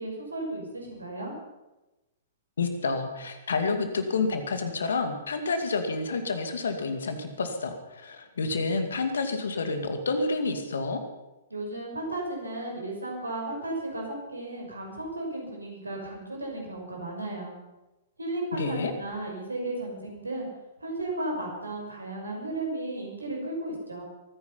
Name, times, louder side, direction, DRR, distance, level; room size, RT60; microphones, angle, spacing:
voice 1, 0.0-1.3 11.5-17.5 18.2-20.5 20.8-24.0, right 2 dB, 85° right, 0 dB, 6.0 m, -34 dB
voice 2, 2.6-11.0 18.5-18.9, left 3 dB, 70° left, 7 dB, 2.3 m, -29 dB
23.0 x 10.0 x 5.6 m, 1.0 s
figure-of-eight pair, 110°, 0 cm